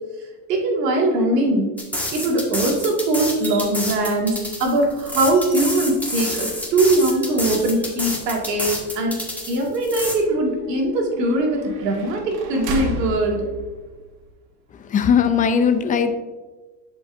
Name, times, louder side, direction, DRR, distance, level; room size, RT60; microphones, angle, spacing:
voice 1, 0.5-1.7 2.1-9.1 9.5-13.5, right 2 dB, 90° right, 0 dB, 1.9 m, -21 dB
sound 1, 1.8-10.1, left 1 dB, 5° left, 1.6 m, -28 dB
sound 2, 3.4-14.3, right 2 dB, 65° right, 1.7 m, -37 dB
voice 2, 14.9-16.1, left 7 dB, 20° left, 9 dB, 0.3 m, -18 dB
11.0 x 5.2 x 2.6 m, 1.3 s
supercardioid pair, 115°, 47 cm